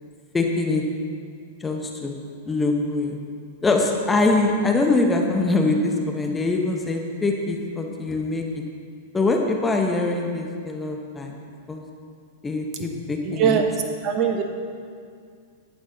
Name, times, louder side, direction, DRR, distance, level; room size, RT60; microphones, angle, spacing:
voice 1, 0.3-0.8 1.6-2.1 2.5-3.2 3.6-8.4 9.1-11.3 11.7-11.8 12.4-13.6, left 3 dB, 15° left, 2 dB, 1.1 m, -23 dB
voice 2, 13.2-13.7 14.0-14.4, right 7 dB, 40° right, 4 dB, 1.3 m, -21 dB
11.5 x 8.6 x 4.0 m, 2.2 s
hypercardioid pair, 100°, 0 cm